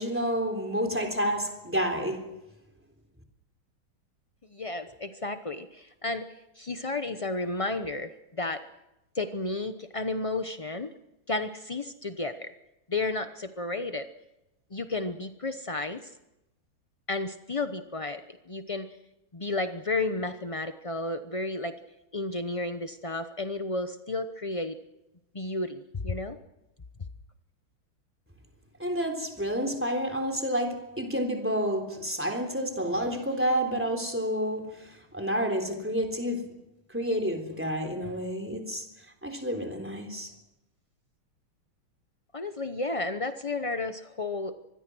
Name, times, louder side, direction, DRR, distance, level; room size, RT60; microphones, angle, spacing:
voice 1, 0.0-2.3 28.8-36.5 36.9-38.9 39.2-40.3, equal, 5° right, 3.5 m, -29 dB
voice 2, 4.5-6.2 6.6-8.6 9.1-10.9 11.3-12.5 12.9-14.1 14.7-16.1 17.1-18.2 18.5-18.9 19.3-21.7 22.1-24.8 25.3-26.4 42.3-44.5, left 2 dB, 55° left, 0.3 m, -32 dB
25.0 x 20.5 x 6.2 m
omnidirectional pair, 2.3 m